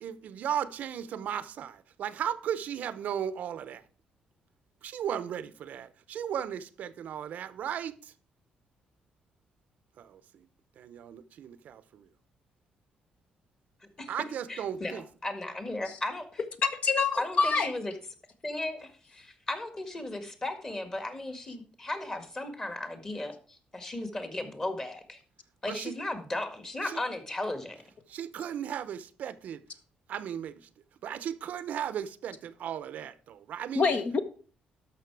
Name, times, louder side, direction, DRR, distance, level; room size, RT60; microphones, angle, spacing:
voice 1, 0.0-3.8 4.8-8.1 10.0-10.5 10.8-12.1 14.1-15.0 25.7-25.9 26.8-27.0 28.1-29.6 30.1-30.7 31.0-33.9, right 9 dB, 70° right, 0.6 m, -36 dB
voice 2, 14.5-16.4 17.2-17.9 18.4-25.2 25.6-27.8, left 2 dB, 20° left, 1.8 m, -36 dB
voice 3, 16.6-17.7 33.7-34.2, left 4 dB, 50° left, 1.1 m, -26 dB
12.5 x 5.8 x 4.7 m
cardioid pair, 120°, 3 cm